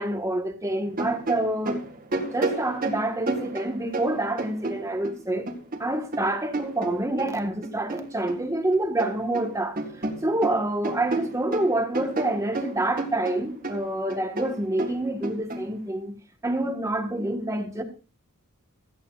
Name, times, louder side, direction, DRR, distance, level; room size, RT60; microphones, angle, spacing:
voice 1, 0.0-1.8 2.1-5.5 5.8-16.1 16.4-17.8, right 1 dB, 15° right, 1.6 m, -27 dB
sound 1, 0.9-5.2 5.5-8.4 8.7-9.5 9.8-15.6, right 2 dB, 40° right, 2.0 m, -32 dB
16.5 x 13.5 x 2.5 m
head